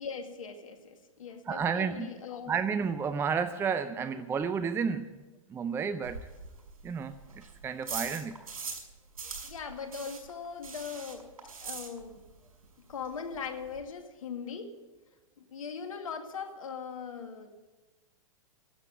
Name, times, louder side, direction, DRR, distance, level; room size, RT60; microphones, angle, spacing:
voice 1, 0.0-2.5 9.4-11.3 11.6-12.2 12.9-14.7 15.4-17.5, left 6 dB, 70° left, 6 dB, 2.1 m, -40 dB
voice 2, 1.5-2.1 2.5-5.2 5.5-6.2 6.8-8.3, right 6 dB, 15° right, 12 dB, 0.5 m, -31 dB
sound 1, 6.0-8.9 9.2-12.4 12.6-12.7 13.1-13.2 13.3-13.8, right 5 dB, 85° right, 5.8 m, -41 dB
12.5 x 7.6 x 9.6 m, 1.1 s
hypercardioid pair, 115°, 18 cm